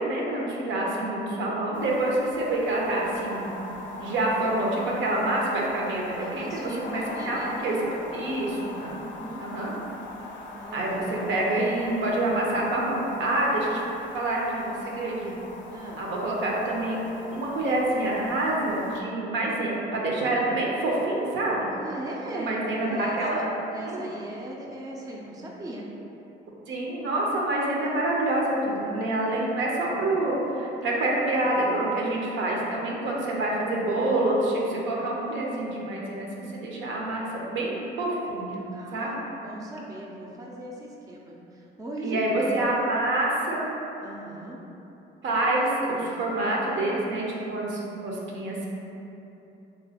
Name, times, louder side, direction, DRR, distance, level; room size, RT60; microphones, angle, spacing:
voice 1, 0.0-3.5 4.0-7.8 8.1-8.9 9.4-9.7 10.7-13.8 14.1-15.3 16.0-17.0 17.3-21.7 22.3-23.4 23.8-24.1 26.7-38.6 38.9-39.2 42.0-43.7 45.2-48.7, right 2 dB, 70° right, -3 dB, 0.6 m, -27 dB
sound 1, 1.7-19.0, left 3 dB, 70° left, 0.4 m, -41 dB
voice 2, 6.2-7.6 9.0-9.4 10.5-11.0 15.7-16.0 21.7-23.4 23.7-25.9 31.4-31.6 38.7-42.8 44.0-44.6, right 1 dB, 20° right, -2 dB, 0.4 m, -38 dB
3.0 x 2.9 x 2.8 m, 3.0 s
cardioid pair, 90°, 20 cm